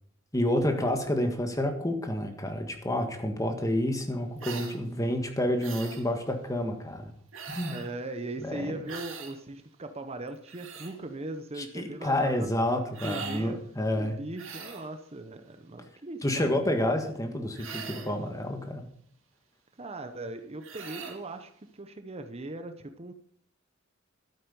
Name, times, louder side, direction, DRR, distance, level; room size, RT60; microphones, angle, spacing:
voice 1, 0.3-7.1 7.5-7.8 8.4-8.8 11.6-14.2 16.2-18.9, left 1 dB, 15° left, 5 dB, 1.7 m, -29 dB
sound 1, 4.4-4.8 5.6-6.0 7.3-7.9 8.9-9.3 10.3-10.9 12.9-13.5 14.3-14.9 17.5-18.2 20.6-21.2, right 6 dB, 70° right, 2.4 m, -41 dB
voice 2, 7.7-12.5 13.0-13.6 13.9-17.0 19.8-23.1, right 2 dB, 30° right, 8 dB, 0.8 m, -39 dB
12.5 x 9.2 x 5.4 m, 0.65 s
head